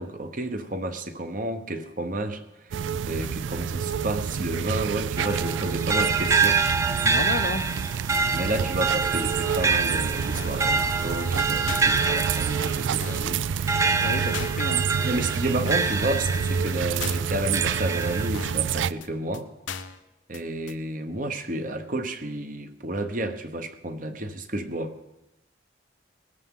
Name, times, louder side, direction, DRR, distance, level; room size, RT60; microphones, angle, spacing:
voice 1, 0.0-2.8 3.1-6.6 8.3-13.4 15.0-19.5 20.3-24.9, right 1 dB, 45° right, 8 dB, 1.1 m, -31 dB
sound 1, 2.7-18.9, right 7 dB, 80° right, 0.4 m, -28 dB
sound 2, 5.2-16.8 17.3-18.3, right 4 dB, 15° right, 0.5 m, -26 dB
voice 2, 7.0-7.7 13.9-14.9, left 3 dB, 50° left, 10 dB, 0.7 m, -32 dB
sound 3, 10.3-10.7 11.0-11.1 11.3-11.4 11.7-12.0 12.3-12.4 12.7-12.8 13.0-13.3 13.7-13.8 14.0-14.1 14.3-14.7 15.0-15.1 15.3-15.4 15.7-16.0 16.3-16.4 16.7-16.8 17.0-17.3 17.7-17.8 18.0-18.1 18.3-18.7 19.0-19.1 19.3-19.4 19.7-20.0 20.3-20.4 20.7-20.8, left 5 dB, 80° left, 0.8 m, -37 dB
19.5 x 13.0 x 3.8 m, 0.93 s
head